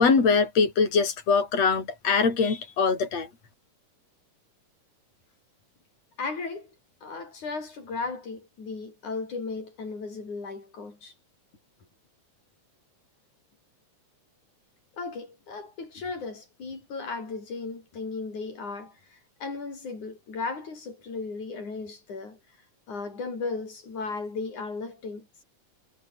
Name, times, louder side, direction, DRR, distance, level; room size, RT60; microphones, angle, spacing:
voice 1, 0.0-3.3, left 5 dB, 60° left, 5.9 m, -22 dB
voice 2, 6.2-6.7 7.0-11.1 15.0-22.4 22.9-25.4, left 4 dB, 85° left, 8.0 m, -36 dB
omnidirectional pair, 3.3 m